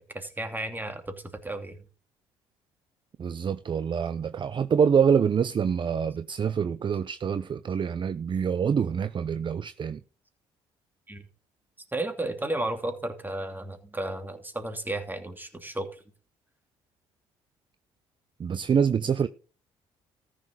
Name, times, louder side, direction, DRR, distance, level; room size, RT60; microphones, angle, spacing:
voice 1, 0.1-1.8 11.1-11.2 11.9-16.0, right 1 dB, 15° right, 2.7 m, -33 dB
voice 2, 3.2-10.0 18.4-19.3, right 7 dB, 40° right, 0.6 m, -25 dB
14.0 x 6.4 x 4.9 m
hypercardioid pair, 60°, 12 cm